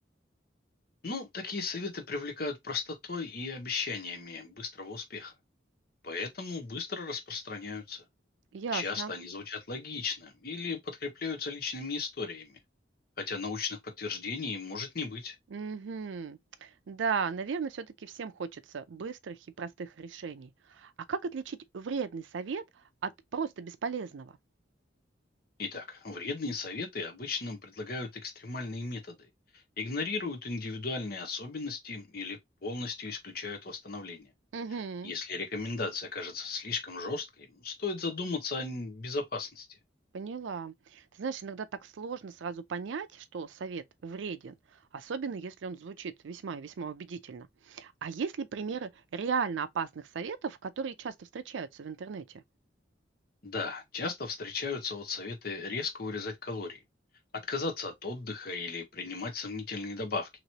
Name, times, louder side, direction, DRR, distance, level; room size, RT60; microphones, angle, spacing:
voice 1, 1.0-5.3 6.0-8.0 8.7-12.6 13.2-15.3 25.6-29.3 29.8-34.3 35.0-39.7 53.4-56.8 57.5-60.3, left 4 dB, 55° left, 0.9 m, -36 dB
voice 2, 8.5-9.1 15.5-22.6 23.0-24.4 34.5-35.1 40.1-44.5 44.9-52.4, right 5 dB, 85° right, 0.4 m, -36 dB
3.0 x 2.9 x 2.8 m
head